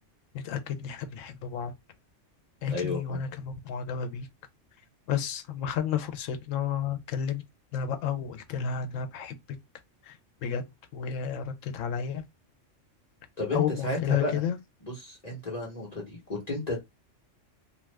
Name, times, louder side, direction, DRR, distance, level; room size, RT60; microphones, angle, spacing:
voice 1, 0.3-1.7 2.6-4.3 5.1-7.4 7.7-9.4 10.0-10.2 10.4-10.6 10.9-12.2 13.5-14.6, left 8 dB, 80° left, 1.0 m, -31 dB
voice 2, 2.7-3.2 13.4-14.4 14.8-16.8, left 2 dB, 35° left, 1.1 m, -33 dB
2.5 x 2.4 x 3.2 m
omnidirectional pair, 1.3 m